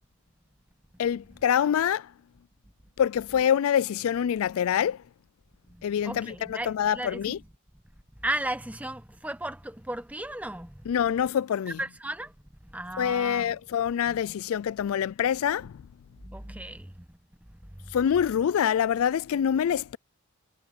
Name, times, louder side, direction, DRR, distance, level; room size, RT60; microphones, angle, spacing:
voice 1, 1.0-2.1 3.0-5.0 5.8-7.4 10.9-11.8 13.0-15.8 17.9-20.0, left 8 dB, 75° left, 0.3 m, -25 dB
voice 2, 5.7-7.4 8.2-10.9 11.7-12.3 12.7-13.5 14.1-14.2 16.2-17.2 17.5-17.9, right 1 dB, 5° right, 0.9 m, -36 dB
head